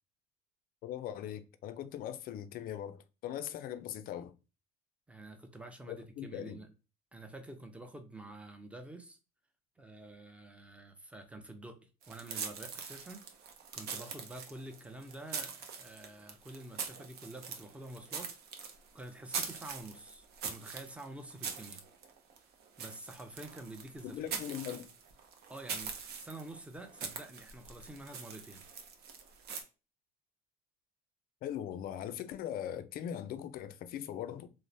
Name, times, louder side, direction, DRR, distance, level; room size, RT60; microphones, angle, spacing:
voice 1, 0.8-4.3 5.9-6.6 24.0-24.9 31.4-34.5, left 10 dB, 50° left, 0.4 m, -40 dB
voice 2, 5.1-6.7 7.1-9.2 9.8-11.8 12.1-18.3 18.9-21.8 22.8-24.2 25.5-28.6, right 2 dB, 5° right, 0.5 m, -48 dB
sound 1, 12.0-29.6, right 6 dB, 55° right, 0.6 m, -43 dB
3.0 x 2.0 x 2.5 m
supercardioid pair, 80°, 20 cm